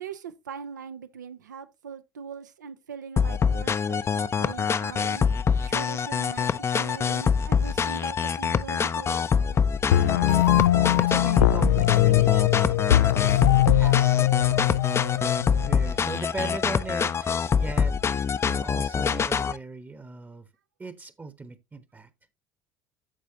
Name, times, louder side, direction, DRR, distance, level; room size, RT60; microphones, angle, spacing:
voice 1, 0.0-5.2 5.6-9.6, right 6 dB, 75° right, 0.8 m, -41 dB
sound 1, 3.2-19.6, left 6 dB, 25° left, 0.6 m, -25 dB
sound 2, 9.9-15.9, left 14 dB, 70° left, 0.4 m, -21 dB
voice 2, 11.0-12.8 13.1-13.5 13.7-14.8 15.7-20.5 20.8-22.1, right 3 dB, 20° right, 1.1 m, -39 dB
14.0 x 5.1 x 2.8 m
figure-of-eight pair, 60°, 10 cm